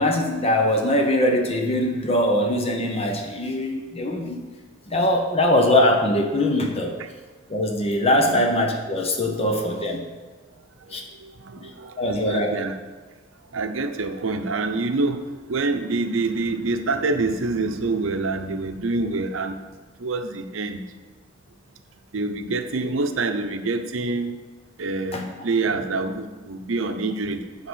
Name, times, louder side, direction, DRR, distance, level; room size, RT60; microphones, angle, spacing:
voice 1, 0.0-4.4 4.9-6.9 7.5-10.0 10.9-11.0 11.6-11.7 12.0-12.5 25.1-25.2, left 1 dB, 30° left, 2 dB, 0.8 m, -22 dB
voice 2, 10.9-12.8 13.5-19.6 20.0-20.8 22.1-24.3 24.8-27.7, right 3 dB, 80° right, 7 dB, 0.7 m, -26 dB
9.8 x 3.6 x 6.3 m, 1.3 s
head